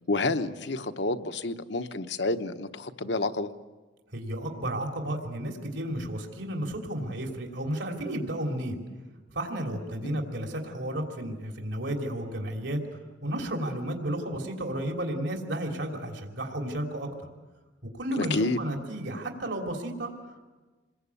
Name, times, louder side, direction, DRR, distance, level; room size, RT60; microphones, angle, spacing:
voice 1, 0.1-3.5 10.0-10.2 18.2-18.6, left 3 dB, 70° left, 9 dB, 1.0 m, -29 dB
voice 2, 4.1-8.8 9.3-17.3 17.9-20.4, right 1 dB, 80° right, 2 dB, 3.1 m, -33 dB
28.0 x 21.5 x 8.4 m, 1.3 s
head